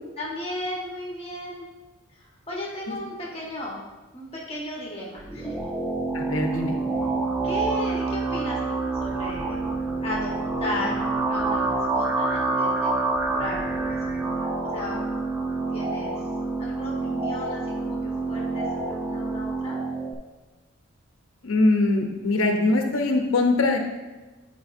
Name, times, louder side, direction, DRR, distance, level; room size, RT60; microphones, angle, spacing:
voice 1, 0.2-1.6 2.2-3.8 4.1-5.7 7.4-9.6 10.0-10.3 10.6-11.0 11.3-15.0 15.7-16.2 16.6-19.8, left 1 dB, 30° left, -4 dB, 1.4 m, -35 dB
sound 1, 5.2-20.1, right 3 dB, 10° right, 0.5 m, -27 dB
voice 2, 6.1-6.8 21.4-23.8, left 2 dB, 80° left, 3 dB, 0.8 m, -22 dB
9.7 x 4.9 x 2.6 m, 1.2 s
head